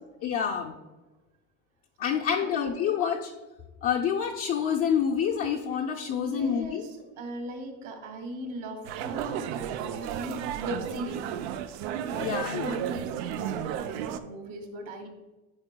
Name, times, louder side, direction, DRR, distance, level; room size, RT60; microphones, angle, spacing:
voice 1, 0.2-0.8 2.0-3.3 3.8-6.8 12.2-12.8, left 8 dB, 45° left, 1 dB, 0.5 m, -27 dB
voice 2, 6.1-11.3 12.0-15.1, right 2 dB, 65° right, 4 dB, 1.5 m, -38 dB
sound 1, 8.8-14.2, right 9 dB, 85° right, 0.5 m, -33 dB
9.6 x 4.4 x 2.2 m, 1.2 s
cardioid pair, 125°, 33 cm